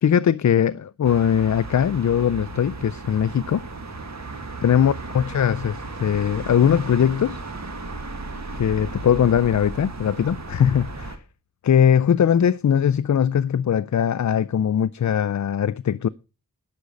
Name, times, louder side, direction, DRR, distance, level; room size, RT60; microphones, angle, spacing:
voice 1, 0.0-3.6 4.6-7.4 8.6-11.2 11.6-16.1, left 8 dB, 55° left, 0.5 m, -20 dB
sound 1, 1.0-11.2, right 2 dB, 50° right, 1.8 m, -35 dB
11.5 x 5.2 x 8.2 m
wide cardioid pair, 80°, 35 cm